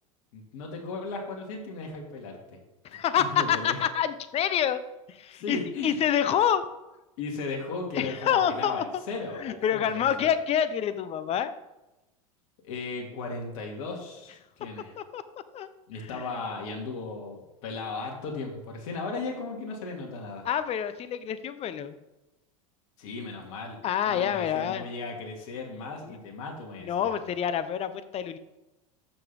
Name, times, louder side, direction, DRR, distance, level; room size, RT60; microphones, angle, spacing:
voice 1, 0.3-2.6 3.3-3.8 5.3-6.0 7.2-10.3 12.6-15.0 15.9-20.4 23.0-23.8 24.0-27.1, left 3 dB, 60° left, 0 dB, 2.4 m, -36 dB
voice 2, 2.8-4.8 5.1-6.6 7.9-8.8 9.3-11.5 15.0-15.2 15.5-15.7 16.0-16.3 20.4-22.0 23.8-24.9 26.0-26.1 26.8-28.4, left 9 dB, 35° left, 13 dB, 0.8 m, -27 dB
13.5 x 6.0 x 3.6 m, 0.98 s
hypercardioid pair, 90°, 18 cm